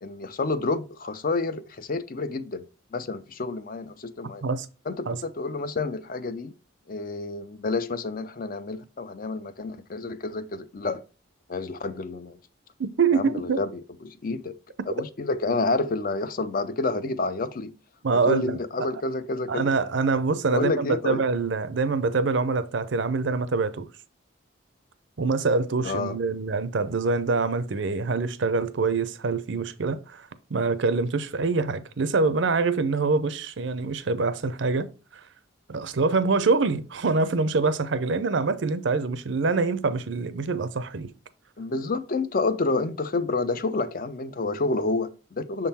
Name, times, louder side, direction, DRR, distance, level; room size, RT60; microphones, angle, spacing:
voice 1, 0.0-2.6 2.9-4.4 4.9-6.5 6.9-11.0 11.5-12.4 13.1-14.5 14.9-17.7 18.1-19.7 20.5-21.2 25.8-26.2 41.6-45.7, left 3 dB, 45° left, 0.4 m, -29 dB
voice 2, 12.8-13.6 18.0-18.6 19.5-23.9 25.2-34.9 35.1-35.2 35.7-41.1, right 4 dB, 65° right, 0.5 m, -25 dB
6.5 x 3.8 x 4.2 m
head